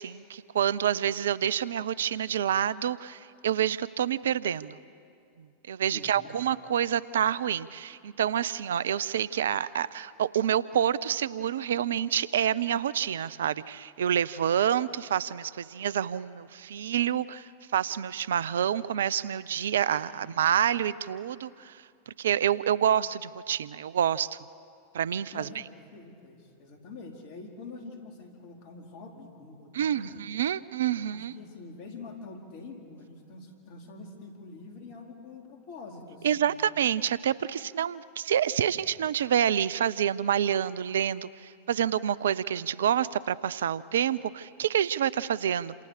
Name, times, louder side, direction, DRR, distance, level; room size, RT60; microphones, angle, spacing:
voice 1, 0.0-4.8 5.7-21.8 22.1-24.4 24.9-25.5 29.7-31.3 36.2-45.7, right 9 dB, 75° right, 19 dB, 0.6 m, -28 dB
voice 2, 5.9-6.3 20.1-20.5 22.8-22.9 25.3-30.2 30.9-36.6, left 3 dB, 55° left, 2 dB, 4.3 m, -46 dB
28.5 x 27.0 x 6.7 m, 2.4 s
hypercardioid pair, 95°, 0 cm